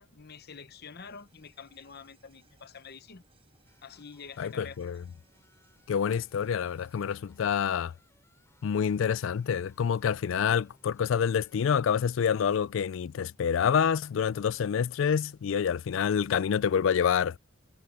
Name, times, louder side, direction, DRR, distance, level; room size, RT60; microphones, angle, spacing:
voice 1, 0.0-3.2 3.8-4.8, left 5 dB, 55° left, 0.9 m, -47 dB
sound 1, 0.9-9.4 9.6-9.7, right 4 dB, 30° right, 4.5 m, -70 dB
sound 2, 3.6-11.6, left 2 dB, 15° left, 3.2 m, -67 dB
voice 2, 4.4-5.0 5.9-7.9 8.6-17.4, left 7 dB, 70° left, 0.3 m, -27 dB
head